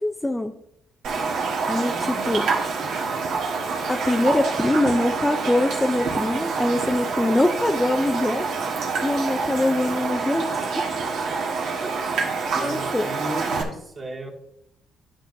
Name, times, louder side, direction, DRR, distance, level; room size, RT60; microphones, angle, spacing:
voice 1, 0.0-0.5 1.7-2.5 3.9-8.5 9.0-10.6 12.5-13.1, left 1 dB, 10° left, 7 dB, 0.5 m, -23 dB
Raindrop, 1.0-13.6, right 4 dB, 80° right, 1.4 m, -27 dB
voice 2, 1.6-3.2 9.4-9.5 11.8-11.9 12.5-14.3, right 2 dB, 40° right, -1 dB, 1.7 m, -36 dB
10.5 x 6.1 x 2.6 m, 0.75 s
cardioid pair, 90°, 0 cm